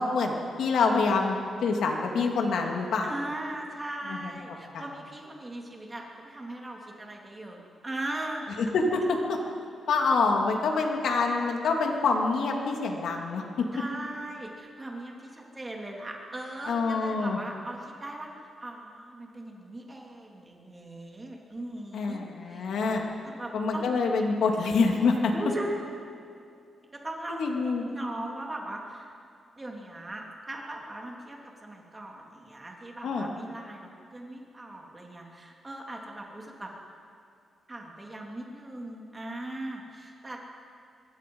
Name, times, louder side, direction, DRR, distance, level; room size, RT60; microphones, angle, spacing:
voice 1, 0.0-3.1 4.1-4.3 4.7-4.8 8.7-9.4 9.9-13.4 16.7-17.4 21.9-23.0 23.5-25.3 27.4-27.9 33.0-33.3, left 4 dB, 80° left, 1 dB, 2.9 m, -26 dB
voice 2, 3.0-8.6 13.7-22.7 23.2-23.9 24.9-25.0 25.3-25.9 26.9-29.1 29.6-36.7 37.7-40.4, right 1 dB, 20° right, 0 dB, 3.1 m, -39 dB
25.0 x 22.5 x 5.6 m, 2.5 s
wide cardioid pair, 140°, 0 cm